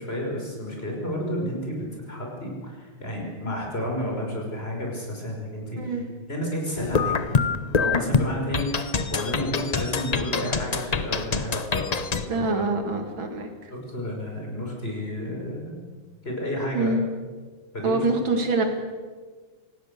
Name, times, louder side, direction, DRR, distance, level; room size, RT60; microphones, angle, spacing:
voice 1, 0.0-6.0 6.3-7.4 7.7-12.6 13.7-15.8 16.2-16.9 17.7-18.0, left 1 dB, 30° left, -1 dB, 5.7 m, -31 dB
sound 1, 6.8-12.3, left 5 dB, 90° left, 0.3 m, -25 dB
voice 2, 12.3-13.7 16.7-17.0 17.8-18.6, right 3 dB, 75° right, 5 dB, 3.1 m, -25 dB
26.5 x 18.5 x 6.8 m, 1.4 s
omnidirectional pair, 2.2 m